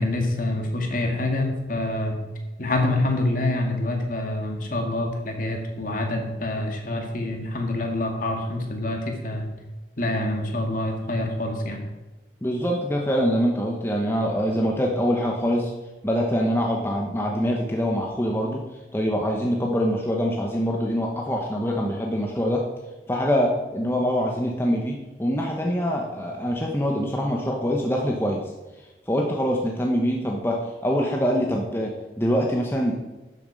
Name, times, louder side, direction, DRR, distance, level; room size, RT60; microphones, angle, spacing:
voice 1, 0.0-2.2 2.6-9.5 10.0-11.8, left 1 dB, 50° left, 2 dB, 2.0 m, -26 dB
voice 2, 12.4-15.7 16.0-18.6 18.9-22.6 23.1-28.4 29.1-32.9, equal, 15° left, 0 dB, 1.0 m, -24 dB
12.0 x 7.3 x 5.2 m, 1.1 s
head